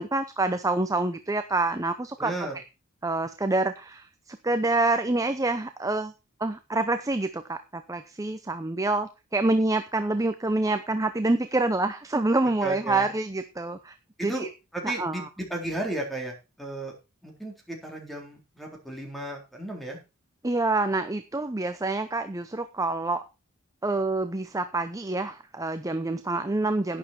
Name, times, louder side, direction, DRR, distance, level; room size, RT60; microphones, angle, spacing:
voice 1, 0.0-2.6 3.0-6.1 6.4-14.0 14.2-14.5 14.8-15.3 20.4-23.2 23.8-27.0, right 2 dB, 15° right, 9 dB, 0.7 m, -27 dB
voice 2, 2.2-2.6 12.6-13.1 14.2-14.5 14.7-16.9 17.2-20.0, right 1 dB, ahead, 1 dB, 3.6 m, -34 dB
11.5 x 9.6 x 4.3 m, 0.28 s
head